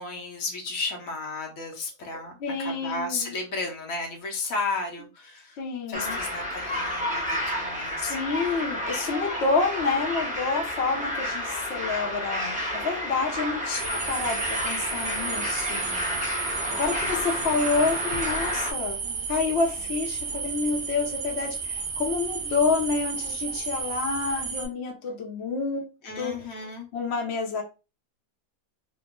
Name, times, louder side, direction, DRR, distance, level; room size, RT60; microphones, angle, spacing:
voice 1, 0.0-5.6 5.9-8.7 15.7-16.3 16.7-16.9 19.8-19.9 26.0-26.9, left 3 dB, 80° left, 1.2 m, -34 dB
voice 2, 2.4-3.3 5.6-6.2 8.1-15.9 16.7-19.0 19.3-25.8 26.2-26.4 26.9-27.6, left 4 dB, 55° left, 0.9 m, -28 dB
sound 1, 5.9-18.7, left 1 dB, 10° right, 0.6 m, -31 dB
sound 2, 13.7-24.7, right 5 dB, 60° right, 0.7 m, -33 dB
2.9 x 2.1 x 3.6 m
omnidirectional pair, 1.5 m